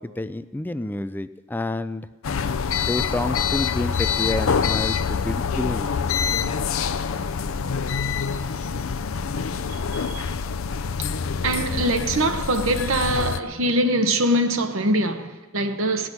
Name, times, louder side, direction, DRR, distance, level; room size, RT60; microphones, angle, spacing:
voice 1, 0.0-2.1 2.8-5.9, left 2 dB, 10° left, 0.4 m, -29 dB
sound 1, 2.2-13.4, left 6 dB, 85° left, 0.5 m, -26 dB
voice 2, 9.9-10.3 11.4-16.1, right 1 dB, 90° right, 1.1 m, -23 dB
18.0 x 6.1 x 9.6 m
head